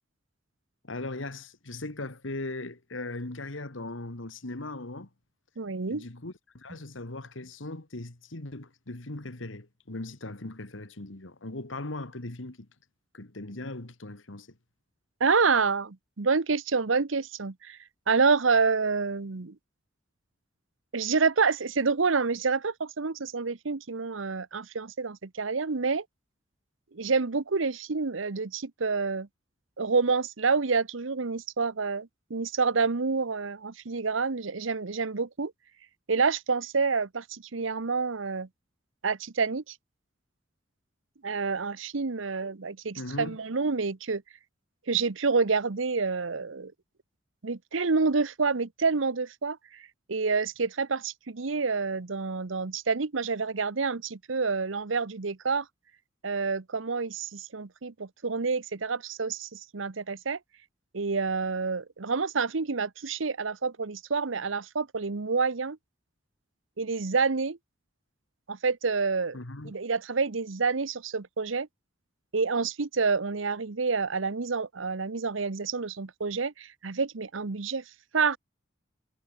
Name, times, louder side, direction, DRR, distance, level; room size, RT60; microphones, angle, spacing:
voice 1, 0.8-5.1 5.9-12.7 13.1-14.5 43.0-43.4 69.3-69.7, left 2 dB, 80° left, 2.0 m, -39 dB
voice 2, 5.6-6.0 15.2-17.8 18.1-19.5 20.9-26.0 26.9-29.3 29.8-35.5 36.1-38.5 39.0-39.7 41.2-44.2 44.9-46.7 47.4-49.8 50.1-55.7 56.2-60.4 60.9-65.8 66.8-67.6 68.5-69.4 69.6-71.7 72.3-77.8 78.1-78.4, right 4 dB, 90° right, 0.9 m, -28 dB
head